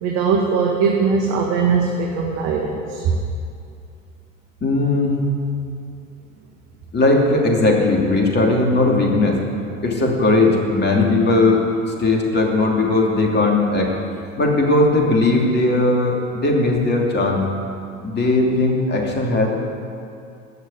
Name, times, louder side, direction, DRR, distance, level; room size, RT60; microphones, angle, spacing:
voice 1, 0.0-3.2, right 5 dB, 50° right, 0 dB, 1.7 m, -20 dB
voice 2, 4.6-5.2 6.9-9.4 9.8-11.7 12.0-13.9 14.4-17.5 18.0-19.5, left 2 dB, 25° left, 0 dB, 2.8 m, -18 dB
16.5 x 6.5 x 9.3 m, 2.5 s
figure-of-eight pair, 80°, 41 cm